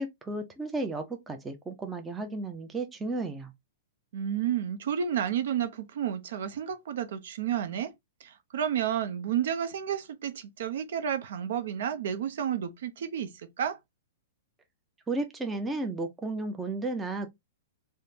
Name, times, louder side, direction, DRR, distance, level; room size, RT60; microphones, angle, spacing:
voice 1, 0.0-3.5 15.1-17.3, right 2 dB, 10° right, 0.4 m, -33 dB
voice 2, 4.1-7.9 8.2-13.3 13.6-13.8, right 9 dB, 70° right, 0.6 m, -31 dB
3.4 x 2.0 x 2.7 m
hypercardioid pair, 155°, 0 cm